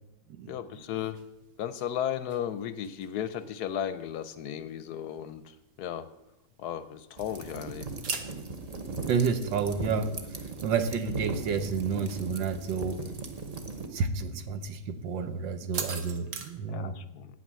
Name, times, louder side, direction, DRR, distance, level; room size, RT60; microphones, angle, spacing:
voice 1, 0.5-1.2 1.6-6.1 6.6-7.9 16.7-17.3, left 10 dB, 70° left, 13 dB, 1.0 m, -35 dB
sound 1, 0.7-16.5, right 5 dB, 55° right, 1.4 m, -46 dB
sound 2, 7.2-13.9, right 3 dB, 35° right, 0.7 m, -38 dB
voice 2, 9.1-10.1 10.6-13.0 13.9-17.0, right 5 dB, 80° right, 10 dB, 1.6 m, -30 dB
9.1 x 8.6 x 7.3 m, 0.98 s
omnidirectional pair, 1.9 m